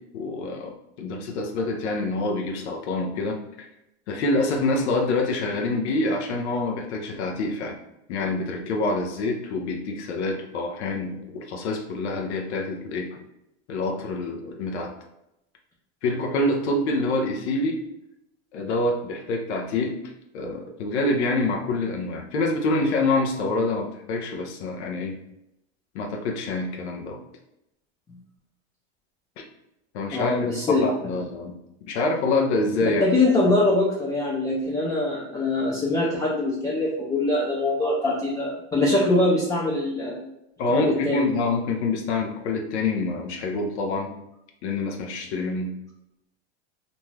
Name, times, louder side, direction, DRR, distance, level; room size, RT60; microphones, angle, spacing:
voice 1, 0.1-0.7 1.0-3.7 4.1-7.8 8.1-13.2 13.7-14.9 16.0-17.8 18.5-20.0 20.3-25.2 25.9-27.2 29.4-29.5 29.9-31.6 31.9-33.0 40.6-44.1 44.6-45.7, left 2 dB, 80° left, 2 dB, 0.6 m, -26 dB
voice 2, 30.1-30.8 32.8-40.2 40.7-41.3, left 2 dB, 10° left, -5 dB, 0.3 m, -23 dB
2.6 x 2.2 x 3.1 m, 0.83 s
supercardioid pair, 130°, 34 cm